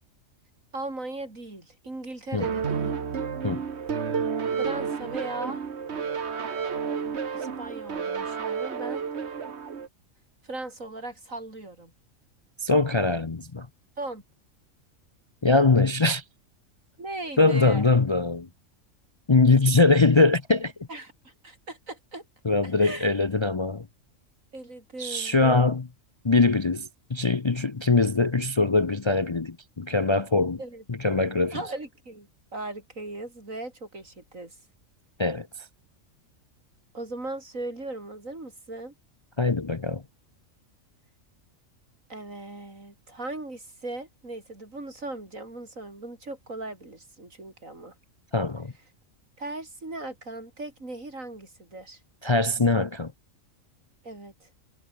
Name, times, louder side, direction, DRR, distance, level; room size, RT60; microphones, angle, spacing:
voice 1, 0.7-2.9 4.6-5.6 7.3-9.1 10.4-11.9 14.0-14.2 17.0-17.8 20.9-22.2 22.6-23.1 24.5-25.6 30.6-30.8 31.5-34.5 36.9-38.9 42.1-47.9 49.4-52.0 54.0-54.5, right 2 dB, 80° right, 6.1 m, -38 dB
sound 1, 2.4-9.9, right 6 dB, 55° right, 1.6 m, -31 dB
voice 2, 12.6-13.7 15.4-16.2 17.4-18.5 19.3-20.7 22.4-23.9 25.0-25.9 26.2-30.6 30.9-31.6 35.2-35.5 39.4-40.0 48.3-48.7 52.2-53.1, left 3 dB, 30° left, 0.6 m, -22 dB
omnidirectional pair, 1.4 m